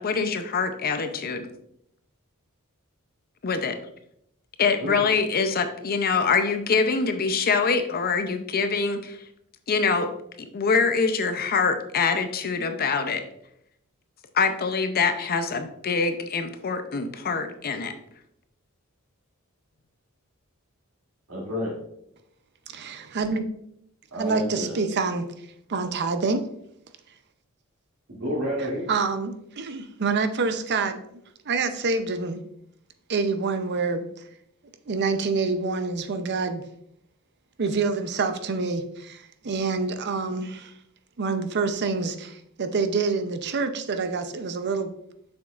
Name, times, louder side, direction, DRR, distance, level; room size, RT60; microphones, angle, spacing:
voice 1, 0.0-1.5 3.4-3.8 4.6-9.2 9.7-10.1 10.4-13.2 14.3-17.9, left 5 dB, 45° left, 8 dB, 0.6 m, -24 dB
voice 2, 21.3-21.8 24.1-24.8 28.1-29.0, equal, 85° right, -4 dB, 2.6 m, -30 dB
voice 3, 22.7-23.5 24.1-25.3 25.7-26.4 28.9-31.0 31.5-32.4 33.1-34.1 34.9-36.6 37.6-40.7 41.2-44.9, right 4 dB, 50° right, 9 dB, 0.6 m, -27 dB
7.2 x 6.2 x 2.4 m, 0.74 s
head